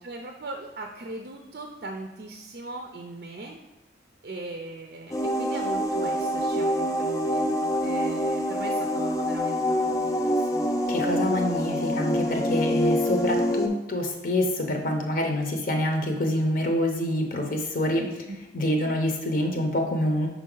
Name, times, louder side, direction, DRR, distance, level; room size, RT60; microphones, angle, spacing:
voice 1, 0.0-3.6 4.2-10.7 18.0-18.4, right 2 dB, 55° right, 3 dB, 0.5 m, -39 dB
sound 1, 5.1-13.7, equal, 20° left, 0.4 m, -26 dB
voice 2, 10.9-18.0 18.5-20.3, left 1 dB, 50° left, 2 dB, 0.7 m, -26 dB
5.2 x 4.7 x 3.8 m, 0.98 s
head